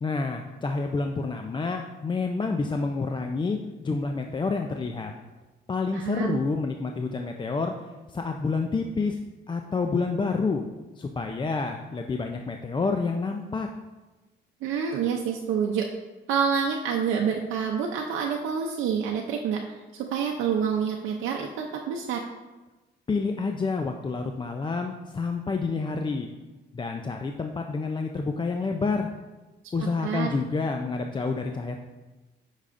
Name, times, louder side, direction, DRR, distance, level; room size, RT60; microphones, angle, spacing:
voice 1, 0.0-5.1 5.7-7.7 8.1-9.2 9.5-10.6 11.0-13.7 23.1-26.3 26.7-29.1 29.7-31.8, left 4 dB, 25° left, 4 dB, 0.4 m, -28 dB
voice 2, 5.9-6.4 14.6-15.8 16.3-19.6 19.9-22.2 29.8-30.3, right 7 dB, 85° right, 1 dB, 0.6 m, -27 dB
8.3 x 5.6 x 2.5 m, 1.1 s
cardioid pair, 90°, 20 cm